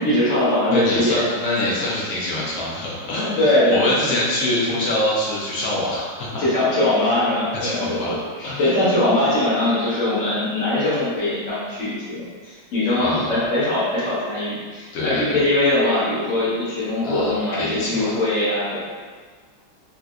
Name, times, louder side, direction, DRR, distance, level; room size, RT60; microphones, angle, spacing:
voice 1, 0.0-1.3 3.2-4.3 4.6-4.7 6.4-18.8, left 1 dB, 45° left, -9 dB, 1.2 m, -21 dB
voice 2, 0.7-6.4 7.6-8.1 8.4-8.8 13.0-13.4 14.9-15.4 17.0-18.1, left 1 dB, 85° left, -6 dB, 0.7 m, -25 dB
3.9 x 2.4 x 2.3 m, 1.5 s
omnidirectional pair, 2.2 m